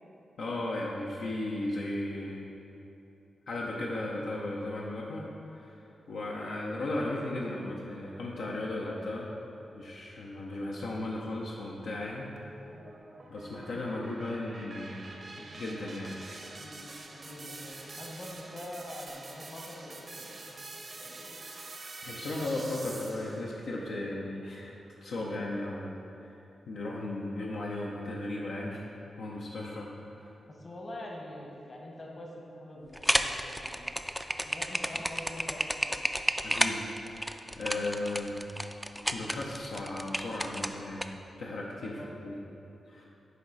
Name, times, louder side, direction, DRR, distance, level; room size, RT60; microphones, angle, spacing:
voice 1, 0.4-2.6 3.5-9.3 9.7-12.3 13.3-15.1 15.5-16.4 22.0-24.7 25.0-26.3 26.7-28.9 29.2-30.3 36.4-36.8 37.2-38.4 39.1-41.1 41.4-42.4 42.9-43.0, left 2 dB, 85° left, -4 dB, 0.6 m, -36 dB
sound 1, 12.4-23.5, right 2 dB, 50° right, 0.7 m, -46 dB
voice 2, 17.1-20.6 21.0-21.4 30.5-36.0 41.9-42.3, left 1 dB, 45° left, -1 dB, 1.1 m, -45 dB
sound 2, 32.9-41.1, equal, 5° right, 0.3 m, -31 dB
9.3 x 3.2 x 3.9 m, 2.9 s
cardioid pair, 60°, 0 cm